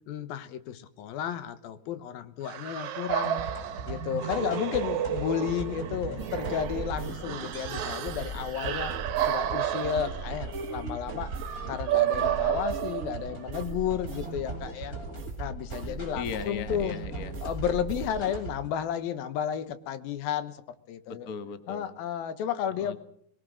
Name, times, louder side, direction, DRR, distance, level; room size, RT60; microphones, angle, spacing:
voice 1, 0.1-3.4 3.8-8.9 9.2-11.3 11.7-14.9 15.4-17.0 17.4-20.6 20.9-21.3 21.7-23.0, left 9 dB, 90° left, 11 dB, 3.1 m, -32 dB
sound 1, 2.4-13.5, right 11 dB, 60° right, 2.3 m, -32 dB
sound 2, 3.1-18.7, right 3 dB, 20° left, 8.5 m, -40 dB
sound 3, 6.2-18.3, right 4 dB, 40° right, 1.1 m, -40 dB
voice 2, 15.8-17.3 21.1-21.9 22.7-23.0, left 6 dB, 40° left, 9 dB, 1.3 m, -38 dB
22.5 x 21.5 x 6.4 m, 0.67 s
omnidirectional pair, 4.1 m